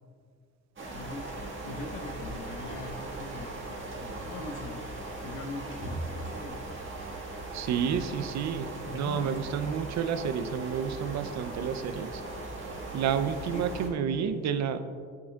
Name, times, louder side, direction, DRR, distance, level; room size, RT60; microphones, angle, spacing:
sound 1, 0.8-13.9, right 2 dB, 40° right, 1.6 m, -39 dB
voice 1, 0.9-1.3 1.6-3.5 4.0-4.8 5.2-6.6 8.8-9.3 13.5-13.7, left 3 dB, 90° left, 3 dB, 0.8 m, -41 dB
voice 2, 7.5-8.7 8.9-12.1 12.9-14.8, right 7 dB, 65° right, 10 dB, 0.5 m, -30 dB
11.0 x 5.8 x 2.3 m, 2.1 s
cardioid pair, 90°, 30 cm